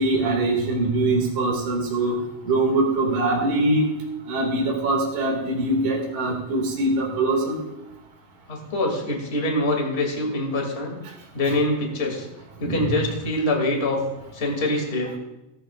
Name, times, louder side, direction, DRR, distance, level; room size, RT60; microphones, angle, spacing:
voice 1, 0.0-2.1 2.5-3.9 4.3-7.6 12.6-13.0, right 2 dB, 85° right, -1 dB, 3.8 m, -23 dB
voice 2, 8.5-11.0 11.3-12.3 12.6-14.0 14.3-15.2, left 1 dB, 20° left, 1 dB, 2.4 m, -24 dB
18.0 x 13.5 x 2.5 m, 0.97 s
omnidirectional pair, 3.6 m